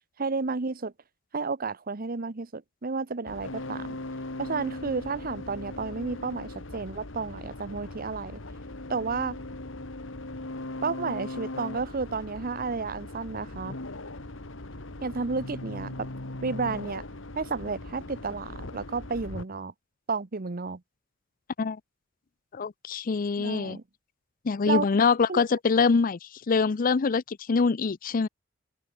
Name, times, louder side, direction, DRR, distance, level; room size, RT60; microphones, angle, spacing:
voice 1, 0.2-0.9 1.3-4.0 4.4-8.4 8.9-9.4 10.8-13.7 15.0-16.1 16.4-17.0 17.4-19.7 20.1-20.8 23.4-23.8 24.7-24.9 25.3-25.4, right 4 dB, 45° right, 0.9 m, -32 dB
sound 1, 3.3-19.4, left 2 dB, 70° left, 2.0 m, -39 dB
voice 2, 22.5-23.8 24.4-28.3, left 5 dB, 45° left, 0.5 m, -24 dB
open air
head